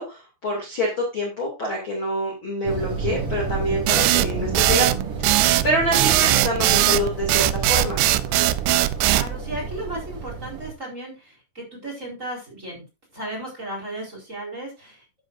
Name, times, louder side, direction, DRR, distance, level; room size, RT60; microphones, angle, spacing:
voice 1, 0.0-4.9 5.2-8.0, equal, 35° left, -1 dB, 2.7 m, -26 dB
sound 1, 2.6-10.7, right 5 dB, 45° right, 2.0 m, -30 dB
sound 2, 3.9-9.3, right 15 dB, 90° right, 2.9 m, -19 dB
voice 2, 9.0-12.8 13.1-15.1, right 1 dB, 15° right, -1 dB, 4.4 m, -35 dB
12.5 x 9.2 x 2.6 m, 0.26 s
omnidirectional pair, 5.0 m